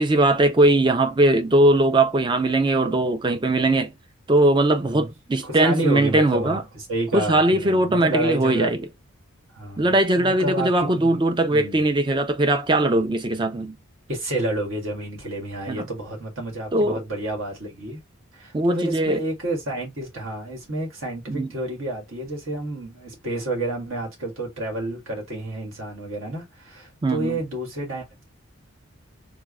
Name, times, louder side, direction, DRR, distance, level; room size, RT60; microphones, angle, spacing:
voice 1, 0.0-3.9 4.3-6.6 7.1-8.8 9.8-13.8 15.7-15.9 16.7-17.0 18.5-19.2 21.3-21.5 27.0-27.4, right 1 dB, 20° right, 0.4 m, -20 dB
voice 2, 5.4-8.7 9.5-10.7 11.0-11.2 11.5-11.8 14.1-18.0 18.3-28.2, right 1 dB, 70° right, 1.6 m, -30 dB
3.5 x 2.0 x 3.5 m
head